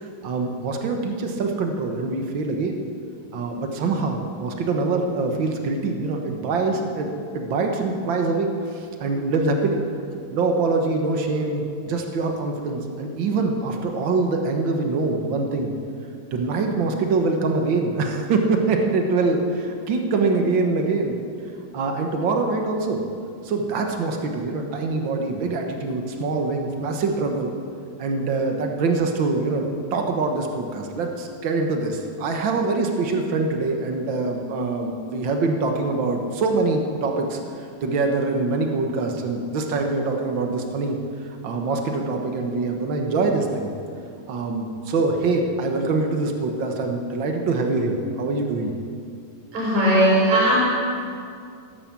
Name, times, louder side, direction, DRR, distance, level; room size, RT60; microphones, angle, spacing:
voice 1, 0.0-2.7 3.3-9.8 10.3-15.7 16.3-21.2 21.7-23.0 23.4-27.5 28.0-29.6 29.9-41.0 41.4-43.7 44.3-48.7, right 3 dB, 70° right, 3 dB, 1.1 m, -24 dB
voice 2, 49.5-50.6, right 1 dB, 50° right, -5 dB, 5.5 m, -18 dB
15.5 x 12.0 x 7.5 m, 2.4 s
omnidirectional pair, 4.2 m